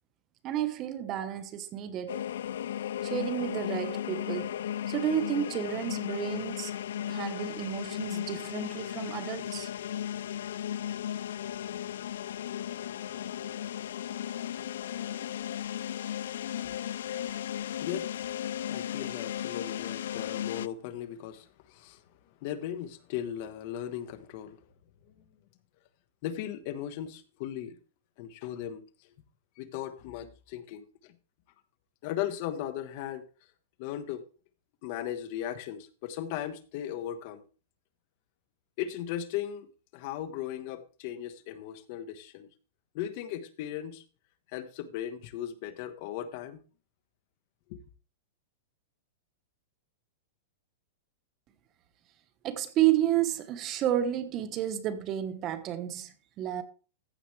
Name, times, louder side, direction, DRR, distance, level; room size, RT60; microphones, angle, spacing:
voice 1, 0.4-2.2 3.0-4.5 4.9-6.7 7.1-9.7 52.4-56.6, right 11 dB, 25° right, 1.1 m, -31 dB
sound 1, 2.1-20.7, left 10 dB, 75° left, 0.3 m, -35 dB
voice 2, 18.6-22.0 22.4-24.6 25.1-25.2 26.2-27.8 28.2-28.8 29.6-31.1 32.0-33.2 33.8-34.2 34.8-37.4 38.8-39.7 39.9-42.5 42.9-44.0 44.5-46.6 47.7-47.8, left 11 dB, 45° left, 1.2 m, -37 dB
14.5 x 7.0 x 3.2 m
supercardioid pair, 160°, 0 cm